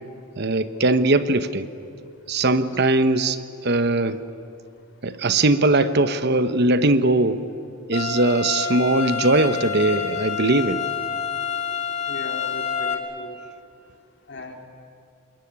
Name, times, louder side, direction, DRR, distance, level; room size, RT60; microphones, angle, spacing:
voice 1, 0.4-1.7 2.3-4.2 5.0-7.4 7.9-10.8, right 2 dB, 50° right, 11 dB, 1.0 m, -20 dB
sound 1, 7.9-12.9, left 7 dB, 30° left, 2.4 m, -28 dB
voice 2, 12.1-13.4 14.3-14.7, left 2 dB, 55° left, 4 dB, 2.6 m, -37 dB
27.0 x 21.0 x 9.7 m, 2.5 s
head